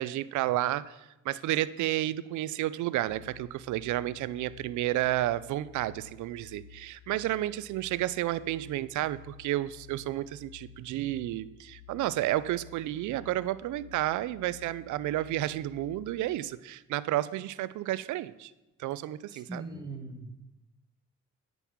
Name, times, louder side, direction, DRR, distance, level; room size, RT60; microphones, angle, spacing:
voice 1, 0.0-18.5 18.8-19.6, right 14 dB, 75° right, 17 dB, 0.5 m, -31 dB
sound 1, 3.1-16.4, left 7 dB, 40° left, 1.2 m, -53 dB
voice 2, 19.3-20.3, right 2 dB, 15° right, 3 dB, 1.6 m, -40 dB
9.2 x 5.4 x 7.2 m, 0.98 s
cardioid pair, 90°, 30 cm